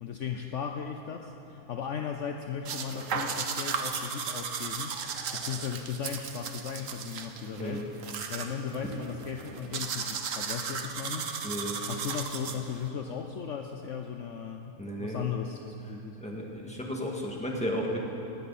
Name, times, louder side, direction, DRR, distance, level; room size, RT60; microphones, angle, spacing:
voice 1, 0.0-4.9 5.3-7.9 8.3-11.3 11.9-16.2, left 7 dB, 60° left, 4 dB, 1.0 m, -36 dB
sound 1, 2.6-12.9, right 6 dB, 60° right, 1.3 m, -36 dB
voice 2, 11.4-11.8 14.8-15.3 16.2-18.0, equal, 5° left, -1 dB, 1.9 m, -34 dB
18.5 x 18.0 x 4.2 m, 2.8 s
omnidirectional pair, 1.6 m